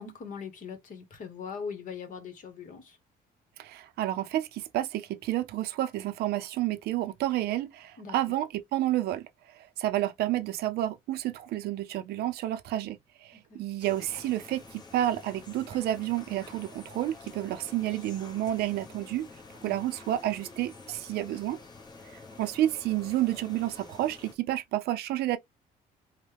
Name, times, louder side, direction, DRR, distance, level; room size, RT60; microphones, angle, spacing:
voice 1, 0.0-3.0 8.0-8.1 13.3-13.6 19.6-19.8, left 6 dB, 50° left, 1.2 m, -41 dB
voice 2, 3.6-9.3 9.5-19.3 19.6-21.6 22.1-25.4, right 14 dB, 70° right, 0.5 m, -30 dB
sound 1, 13.8-24.3, left 3 dB, 25° left, 1.0 m, -49 dB
3.1 x 2.2 x 3.3 m
cardioid pair, 110°, 17 cm